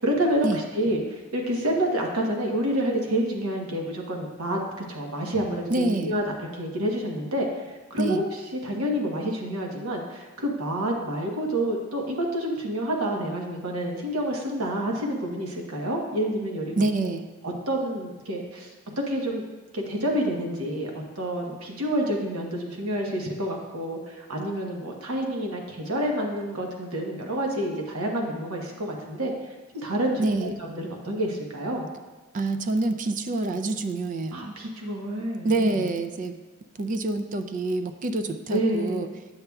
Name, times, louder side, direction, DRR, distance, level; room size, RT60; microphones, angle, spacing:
voice 1, 0.0-4.6 4.9-6.2 6.5-7.6 7.9-16.7 17.4-18.7 19.0-19.4 19.7-29.3 29.7-31.9 34.3-35.8 38.5-39.0, right 1 dB, 85° right, 0 dB, 1.1 m, -28 dB
voice 2, 5.7-6.1 8.0-8.2 16.8-17.3 30.2-30.5 32.3-34.5 35.4-36.4 36.8-39.1, right 2 dB, 40° right, 8 dB, 0.4 m, -26 dB
9.7 x 6.7 x 2.3 m, 1.2 s
head